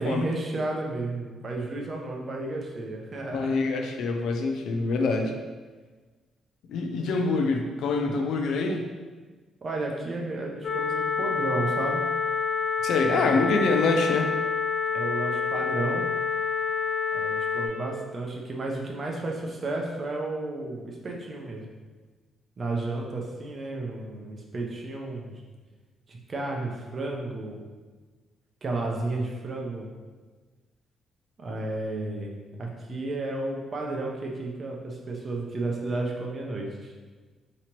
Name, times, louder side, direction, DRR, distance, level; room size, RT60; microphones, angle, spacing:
voice 1, 0.0-3.5 9.6-12.0 13.0-13.6 14.9-16.0 17.1-21.7 22.6-25.4 26.1-27.6 28.6-29.9 31.4-36.9, right 2 dB, 35° right, 0 dB, 0.7 m, -32 dB
voice 2, 3.3-5.3 6.7-8.9 12.8-14.3, left 3 dB, 75° left, 4 dB, 0.4 m, -25 dB
sound 1, 10.6-17.7, left 5 dB, 50° left, 0.9 m, -27 dB
4.8 x 3.0 x 3.0 m, 1.4 s
cardioid pair, 110°, 0 cm